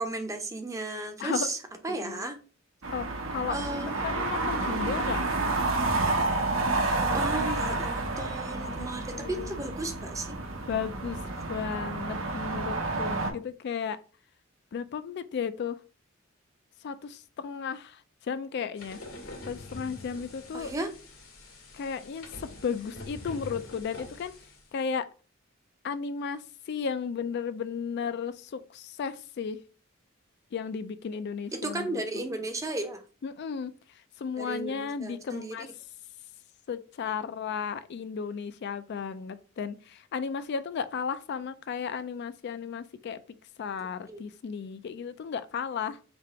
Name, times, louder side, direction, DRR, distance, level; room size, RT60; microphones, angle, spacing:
voice 1, 0.0-1.6 1.8-2.4 3.5-4.2 7.1-10.4 20.5-20.9 31.5-33.0 34.4-35.7 44.1-44.2, right 2 dB, 15° right, 0.6 m, -34 dB
voice 2, 1.2-1.5 1.9-2.3 2.9-5.2 8.6-9.7 10.7-11.2 11.5-14.0 14.7-15.8 16.8-19.0 19.5-20.7 21.7-24.3 24.7-25.1 25.8-29.6 30.5-32.2 33.2-35.7 36.7-43.2 43.6-46.0, left 6 dB, 55° left, 0.3 m, -34 dB
sound 1, 2.8-13.3, right 2 dB, 80° right, 0.9 m, -30 dB
sound 2, 18.8-24.7, left 2 dB, 85° left, 1.7 m, -45 dB
3.5 x 2.8 x 4.5 m
head